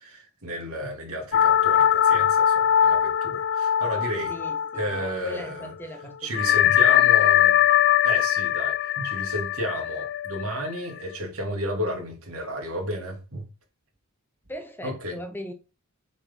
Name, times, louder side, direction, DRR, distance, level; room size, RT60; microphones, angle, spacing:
voice 1, 0.0-4.3 4.8-5.7 6.2-7.6 8.0-13.4 14.8-15.2, equal, 70° right, 2.9 m, -32 dB
sound 1, 1.3-5.3 5.6-5.7 6.3-11.0, left 10 dB, 50° left, 0.4 m, -21 dB
voice 2, 4.3-7.3 14.5-15.5, equal, 10° left, 0.8 m, -40 dB
7.0 x 4.5 x 5.5 m
head